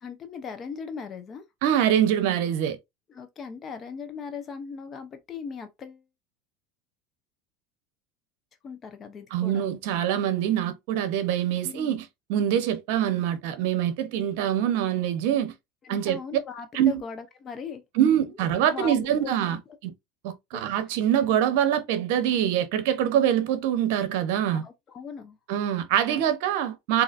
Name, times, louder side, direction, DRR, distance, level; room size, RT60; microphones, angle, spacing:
voice 1, 0.0-1.4 3.1-6.0 8.6-9.7 11.6-12.0 15.8-17.8 18.7-19.3 20.5-20.7 21.3-21.4 24.6-25.4, left 6 dB, 30° left, 0.9 m, -38 dB
voice 2, 1.6-2.8 9.3-12.0 12.3-15.5 15.9-16.2 16.7-17.0 18.0-19.9 20.2-24.6 25.5-27.0, right 10 dB, 70° right, 0.8 m, -24 dB
3.8 x 2.8 x 2.5 m
supercardioid pair, 115°, 0 cm